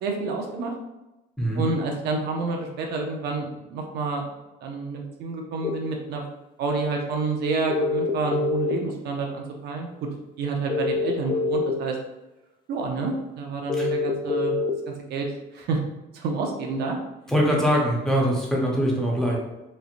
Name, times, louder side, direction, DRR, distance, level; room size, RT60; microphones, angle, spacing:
voice 1, 0.0-0.7 1.5-4.3 4.6-6.2 6.6-9.9 10.4-12.0 12.7-14.5 14.9-15.3 15.5-15.8 16.1-17.0, right 3 dB, 60° right, 2 dB, 0.5 m, -29 dB
sound 1, 5.6-5.7 7.7-8.9 10.7-11.7 13.7-14.7, left 3 dB, 25° left, 0.4 m, -25 dB
voice 2, 17.3-19.4, equal, 5° left, -3 dB, 0.9 m, -22 dB
3.1 x 2.4 x 2.4 m, 0.99 s
supercardioid pair, 85°, 19 cm